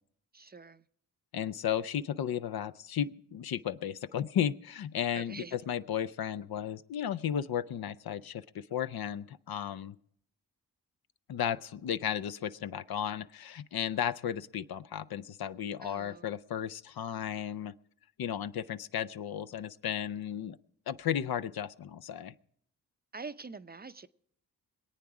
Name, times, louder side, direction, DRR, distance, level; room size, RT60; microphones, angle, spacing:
voice 1, 0.3-0.9 5.1-5.6 15.8-16.3 23.1-24.1, right 4 dB, 25° right, 0.6 m, -45 dB
voice 2, 1.3-10.0 11.3-17.7 18.2-20.6 20.9-22.3, left 9 dB, 65° left, 0.6 m, -34 dB
21.5 x 8.7 x 4.8 m
supercardioid pair, 45°, 39 cm